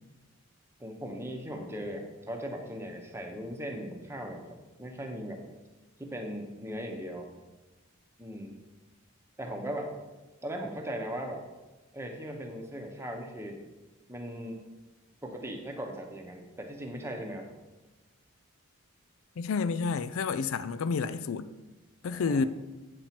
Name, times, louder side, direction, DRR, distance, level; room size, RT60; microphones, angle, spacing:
voice 1, 0.8-5.4 6.0-7.3 8.2-8.6 9.4-9.9 10.4-11.4 11.9-13.6 14.1-14.6 15.2-17.5 22.0-22.4, equal, 10° right, 0.9 m, -38 dB
voice 2, 19.4-21.5 22.0-22.4, left 5 dB, 75° left, 0.4 m, -29 dB
8.0 x 4.4 x 5.9 m
head